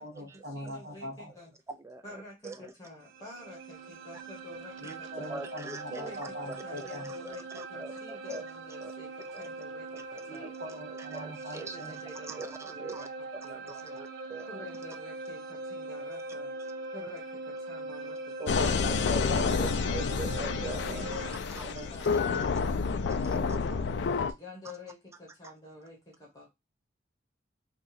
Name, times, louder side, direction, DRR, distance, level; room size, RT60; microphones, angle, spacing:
voice 1, 0.0-1.3 4.8-7.1 10.2-12.0 20.8-22.5, equal, 55° right, 0.9 m, -43 dB
voice 2, 0.5-1.5 2.0-5.3 5.9-6.2 6.6-10.5 11.4-14.0 14.5-16.5 16.9-19.3 20.0-20.1 20.7-21.6 21.9-26.5, left 3 dB, 20° left, 0.9 m, -49 dB
voice 3, 1.7-2.0 2.4-2.7 4.8-4.9 5.3-6.1 6.5-6.9 7.2-8.4 8.8-8.9 9.3-9.4 9.9-10.0 10.9-11.0 11.2-11.8 12.3-13.1 13.3-14.5 18.4-21.2 21.6-21.7 22.0-22.2, right 2 dB, 15° right, 0.3 m, -42 dB
sound 1, 3.0-21.4, right 2 dB, 85° right, 0.4 m, -41 dB
sound 2, 18.5-24.3, left 5 dB, 70° left, 0.3 m, -29 dB
2.7 x 2.3 x 3.9 m
head